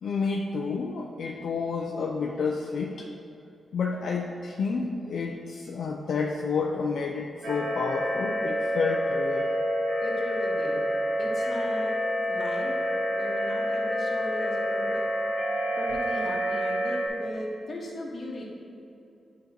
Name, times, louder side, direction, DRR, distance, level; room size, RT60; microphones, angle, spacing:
voice 1, 0.0-3.1 3.7-9.5, left 4 dB, 75° left, 0 dB, 0.4 m, -30 dB
sound 1, 7.4-17.1, equal, 70° right, 1.3 m, -28 dB
voice 2, 10.0-10.9 11.2-12.0 12.3-12.8 13.1-15.1 15.8-18.4, left 1 dB, 45° left, -2 dB, 1.3 m, -38 dB
9.4 x 5.1 x 2.9 m, 2.7 s
wide cardioid pair, 120°, 0 cm